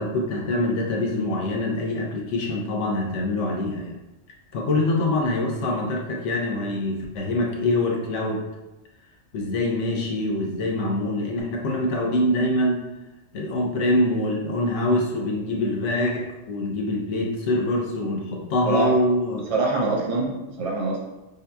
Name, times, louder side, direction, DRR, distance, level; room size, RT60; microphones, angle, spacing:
voice 1, 0.0-4.0 4.5-8.4 9.3-12.8 13.3-19.4, left 1 dB, 90° left, 0 dB, 1.0 m, -24 dB
voice 2, 19.5-21.0, right 3 dB, 60° right, -2 dB, 0.3 m, -24 dB
5.3 x 2.8 x 2.2 m, 1.0 s
omnidirectional pair, 1.2 m